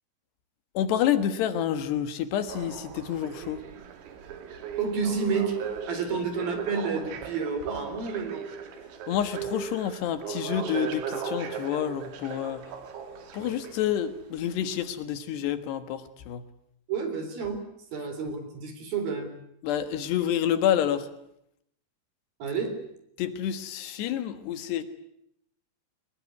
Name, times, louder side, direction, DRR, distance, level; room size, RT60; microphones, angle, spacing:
voice 1, 0.7-3.6 6.1-6.3 9.1-12.7 13.3-16.4 19.6-21.1 23.2-24.8, left 10 dB, 65° left, 10 dB, 3.2 m, -28 dB
sound 1, 2.5-14.1 14.7-14.8, right 6 dB, 70° right, 4.7 m, -37 dB
voice 2, 4.8-5.6 5.9-8.4 16.9-17.6 17.9-19.3 22.4-22.8, right 5 dB, 50° right, 8 dB, 5.2 m, -30 dB
24.0 x 21.0 x 9.6 m, 0.77 s
omnidirectional pair, 5.6 m